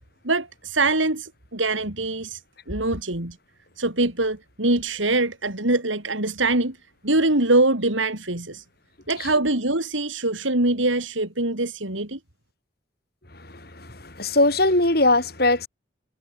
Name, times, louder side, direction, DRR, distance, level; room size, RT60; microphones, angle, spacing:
voice 1, 0.2-2.4 2.7-3.4 3.8-6.8 7.0-8.6 9.1-12.2, right 2 dB, 90° right, 4.7 m, -23 dB
voice 2, 13.5-15.7, left 2 dB, 55° left, 5.3 m, -21 dB
head